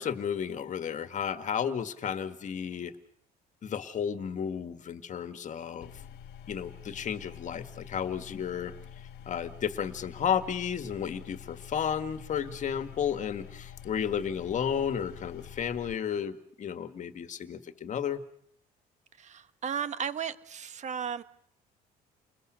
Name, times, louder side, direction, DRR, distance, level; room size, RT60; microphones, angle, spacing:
voice 1, 0.0-2.9 3.6-6.0 6.5-8.7 9.3-18.2, left 8 dB, 45° left, 1.9 m, -33 dB
sound 1, 5.8-15.9, left 9 dB, 75° left, 1.4 m, -47 dB
voice 2, 19.2-21.2, right 7 dB, 45° right, 1.3 m, -35 dB
29.5 x 20.5 x 6.4 m
cardioid pair, 110°, 17 cm